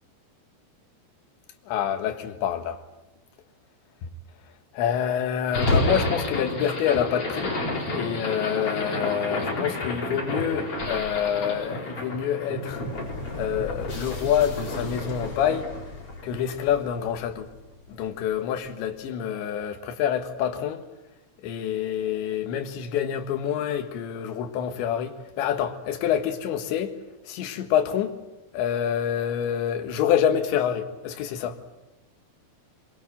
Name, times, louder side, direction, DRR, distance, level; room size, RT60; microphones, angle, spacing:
voice 1, 1.7-2.8 4.7-7.5 7.9-12.8 13.4-15.7 16.2-17.5 17.9-20.8 21.4-26.9 27.3-28.1 28.5-31.6, left 9 dB, 75° left, 3.8 m, -27 dB
sound 1, 5.5-17.7, left 1 dB, 30° left, 5.1 m, -30 dB
23.0 x 23.0 x 8.9 m
omnidirectional pair, 5.4 m